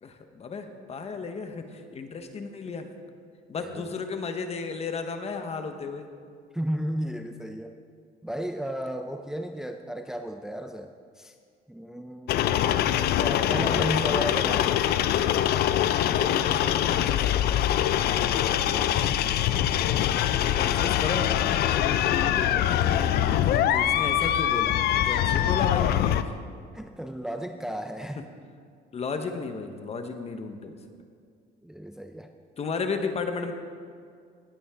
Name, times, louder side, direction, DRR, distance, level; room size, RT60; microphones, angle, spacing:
voice 1, 0.0-2.9 3.5-6.1 15.8-17.7 20.1-21.3 21.8-26.4 28.9-30.8 32.6-33.5, left 4 dB, 40° left, 6 dB, 1.2 m, -34 dB
voice 2, 3.6-4.0 6.5-7.8 8.2-11.3 11.7-12.4 13.2-14.7 18.4-19.5 26.7-28.2 31.6-32.3, equal, 5° right, 6 dB, 0.5 m, -34 dB
sound 1, 12.3-26.2, left 11 dB, 70° left, 0.5 m, -24 dB
18.5 x 8.6 x 3.7 m, 2.2 s
cardioid pair, 110°, 17 cm